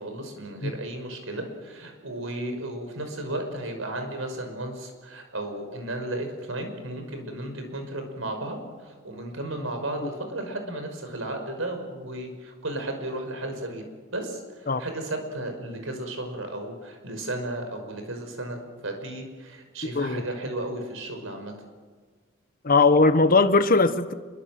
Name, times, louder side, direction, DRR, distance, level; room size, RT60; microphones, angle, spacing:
voice 1, 0.0-21.5, right 1 dB, 75° right, 5 dB, 5.4 m, -34 dB
voice 2, 22.6-24.1, left 3 dB, 45° left, 10 dB, 1.2 m, -19 dB
26.5 x 23.0 x 7.8 m, 1.5 s
head